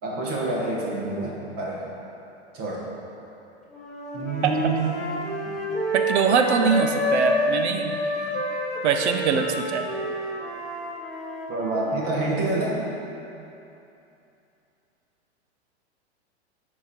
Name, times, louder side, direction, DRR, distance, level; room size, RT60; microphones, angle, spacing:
voice 1, 0.0-1.8 2.5-2.8 4.1-4.8 5.4-5.5 11.5-12.8, right 2 dB, 40° right, -3 dB, 1.6 m, -27 dB
sound 1, 3.7-7.6 7.8-12.2, equal, ahead, 1.9 m, -29 dB
voice 2, 5.9-8.0 8.8-9.8, right 5 dB, 75° right, 6 dB, 0.8 m, -22 dB
9.4 x 5.1 x 4.3 m, 2.8 s
hypercardioid pair, 105°, 34 cm